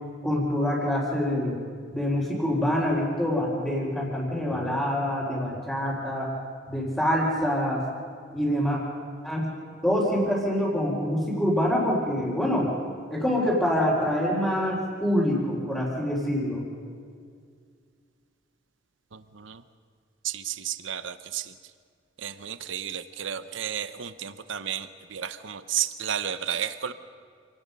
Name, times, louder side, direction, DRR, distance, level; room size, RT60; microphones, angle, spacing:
voice 1, 0.2-1.6 1.9-6.3 6.7-7.8 8.3-8.8 9.2-9.5 9.8-12.7 13.1-16.6, equal, 5° left, -9 dB, 4.0 m, -25 dB
voice 2, 20.2-21.4 22.2-24.9 25.1-26.9, right 9 dB, 75° right, 12 dB, 0.8 m, -32 dB
27.5 x 18.5 x 5.4 m, 2.1 s
head